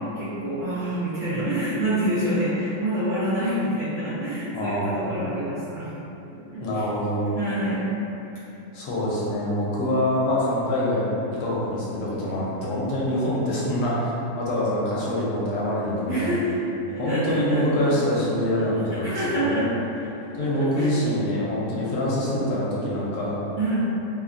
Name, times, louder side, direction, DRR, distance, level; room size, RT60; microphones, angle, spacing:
voice 1, 0.1-5.9 6.4-6.9 7.4-7.9 16.1-16.6 16.9-17.9 18.5-19.7 20.0-20.9 23.6-23.8, right 1 dB, 65° right, -11 dB, 0.8 m, -27 dB
voice 2, 4.5-5.3 6.6-7.3 8.7-16.4 17.0-19.2 19.4-19.6 20.3-23.4, left 1 dB, 75° left, -6 dB, 1.1 m, -25 dB
2.8 x 2.1 x 2.4 m, 2.9 s
omnidirectional pair, 1.7 m